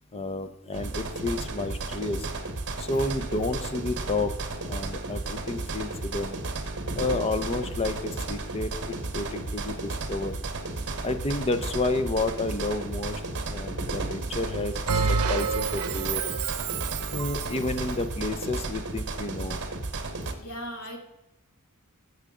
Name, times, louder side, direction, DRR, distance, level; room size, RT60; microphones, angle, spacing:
voice 1, 0.1-2.3 2.8-4.3 4.6-6.4 6.9-10.3 11.0-13.2 13.5-16.3 17.1-19.6, left 2 dB, 25° left, 10 dB, 0.7 m, -30 dB
sound 1, 0.7-20.3, right 2 dB, 55° right, 1.1 m, -33 dB
Bell, 14.9-17.7, right 5 dB, 90° right, 0.7 m, -28 dB
voice 2, 20.4-21.0, equal, 80° left, 3 dB, 2.1 m, -38 dB
15.5 x 6.5 x 3.7 m, 0.89 s
head